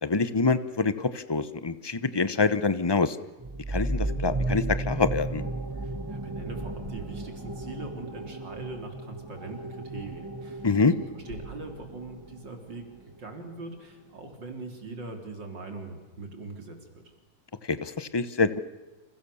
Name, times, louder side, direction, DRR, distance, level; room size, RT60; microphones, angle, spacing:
voice 1, 0.0-3.2 3.7-5.4 10.6-11.0 17.7-18.6, left 4 dB, 40° left, 14 dB, 0.3 m, -25 dB
sound 1, 3.4-12.8, right 2 dB, 20° right, 0.5 m, -34 dB
voice 2, 5.7-10.7 11.1-17.0, right 3 dB, 60° right, 5 dB, 4.3 m, -41 dB
sound 2, 6.4-14.4, right 1 dB, 65° left, 8.2 m, -50 dB
29.5 x 28.0 x 7.1 m, 1.1 s
omnidirectional pair, 2.2 m